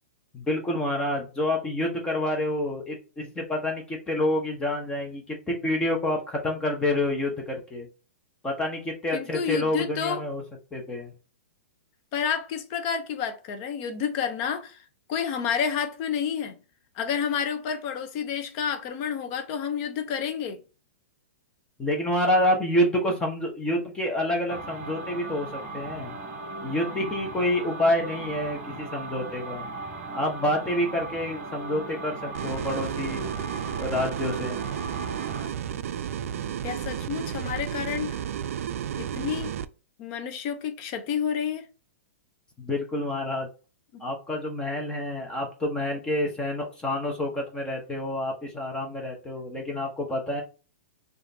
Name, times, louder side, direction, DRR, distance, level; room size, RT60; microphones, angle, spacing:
voice 1, 0.3-7.9 8.4-10.4 10.7-11.1 21.8-26.2 26.6-29.7 30.1-33.4 33.8-34.6 42.6-43.5 44.0-50.4, left 1 dB, 10° left, 0.9 m, -28 dB
voice 2, 9.1-10.2 12.1-14.8 15.1-16.6 17.0-20.6 36.6-38.2 39.0-39.5 40.0-41.7 43.9-44.0, left 7 dB, 40° left, 0.7 m, -30 dB
sound 1, 24.5-35.5, right 3 dB, 25° right, 1.3 m, -38 dB
sound 2, 32.3-39.6, right 9 dB, 70° right, 0.4 m, -32 dB
4.8 x 2.6 x 2.8 m
hypercardioid pair, 140°, 8 cm